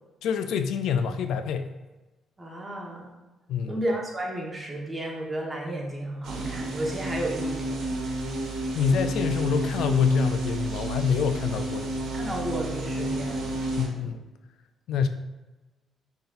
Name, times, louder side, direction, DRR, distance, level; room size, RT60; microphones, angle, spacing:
voice 1, 0.2-1.7 3.5-3.8 8.7-11.9 13.7-14.3 14.9-15.1, left 6 dB, 80° left, 8 dB, 0.3 m, -26 dB
voice 2, 2.4-3.2 3.6-8.0 12.1-13.4 14.0-14.1, right 1 dB, 20° right, -2 dB, 1.2 m, -33 dB
sound 1, 6.2-13.9, right 2 dB, 80° right, 1.2 m, -31 dB
5.3 x 3.9 x 2.5 m, 1.1 s
cardioid pair, 90°, 0 cm